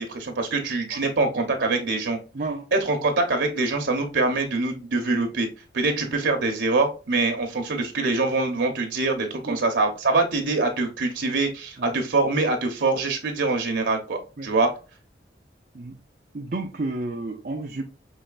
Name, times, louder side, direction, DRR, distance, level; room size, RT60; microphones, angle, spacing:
voice 1, 0.0-2.2 2.7-5.5 5.7-14.7, right 3 dB, 90° right, 0.9 m, -24 dB
voice 2, 2.3-2.7 9.5-9.6 11.8-12.0 14.4-14.5 15.7-16.0 16.3-17.8, right 2 dB, 50° right, 0.5 m, -31 dB
5.6 x 3.2 x 2.4 m
head